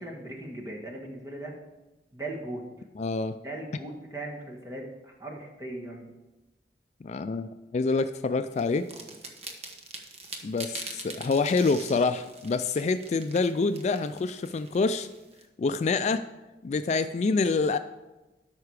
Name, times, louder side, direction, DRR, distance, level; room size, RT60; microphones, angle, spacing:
voice 1, 0.0-1.5 2.1-2.6 3.4-6.1, right 1 dB, 15° right, -1 dB, 1.7 m, -38 dB
voice 2, 3.0-3.4 7.0-8.9 10.4-15.1 15.6-16.2 16.6-17.8, left 4 dB, 40° left, 10 dB, 0.3 m, -26 dB
sound 1, 8.6-15.4, right 3 dB, 35° right, 1.1 m, -43 dB
13.0 x 5.8 x 4.8 m, 1.1 s
head